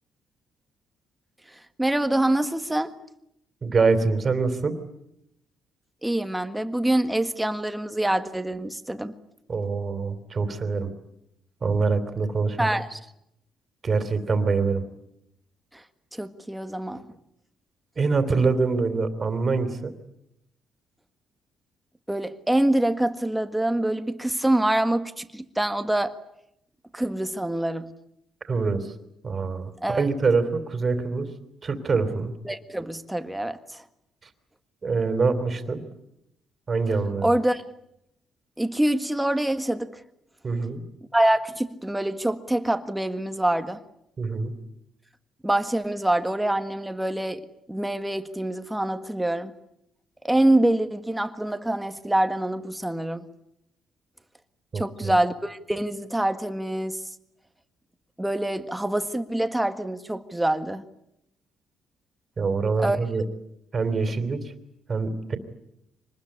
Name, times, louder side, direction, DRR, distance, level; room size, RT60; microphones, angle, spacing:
voice 1, 1.8-2.9 6.0-9.1 12.6-13.0 15.7-15.8 16.1-17.1 22.1-26.1 26.9-27.9 29.8-30.0 32.4-33.8 37.2-37.6 38.6-39.9 41.1-43.8 45.4-47.4 47.7-49.5 50.2-53.3 54.7-57.0 58.2-60.8 62.8-63.0, right 1 dB, 5° right, 9 dB, 1.6 m, -25 dB
voice 2, 3.6-4.7 9.5-10.9 11.6-12.7 13.8-14.8 18.0-19.9 28.5-28.9 29.2-31.3 31.6-32.3 34.8-35.8 36.7-37.4 40.4-40.8 44.2-44.5 54.7-55.1 62.4-63.2 63.7-64.4 64.9-65.4, right 4 dB, 35° right, 9 dB, 3.3 m, -24 dB
25.5 x 20.0 x 10.0 m, 0.80 s
cardioid pair, 115°, 0 cm